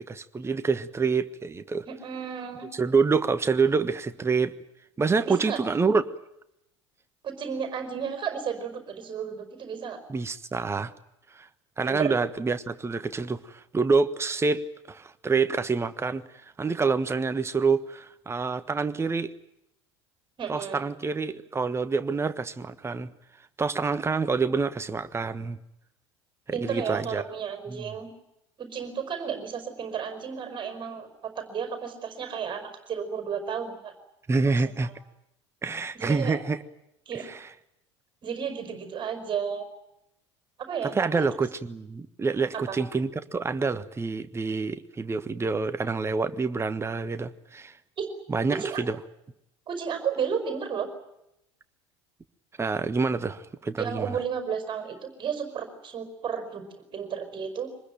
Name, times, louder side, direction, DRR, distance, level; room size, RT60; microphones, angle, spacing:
voice 1, 0.1-1.9 2.7-4.5 5.0-6.0 10.1-10.9 11.3-11.5 11.8-16.2 16.6-19.3 20.5-23.1 23.6-25.6 26.5-27.2 27.7-27.9 34.3-34.9 35.6-36.6 37.2-37.5 40.8-47.7 48.3-49.0 52.6-54.2, right 4 dB, 15° right, 12 dB, 1.4 m, -27 dB
voice 2, 1.9-2.7 5.3-5.6 7.2-10.0 11.8-12.1 20.4-20.8 26.5-28.1 28.6-33.9 34.7-34.9 35.9-36.4 37.1-37.3 38.2-39.7 40.6-41.2 42.5-42.8 48.0-48.1 48.5-48.8 49.7-50.9 53.8-56.6 56.9-57.7, right 7 dB, 30° right, 8 dB, 5.2 m, -33 dB
24.5 x 20.5 x 9.2 m, 0.83 s
figure-of-eight pair, 70°, 15 cm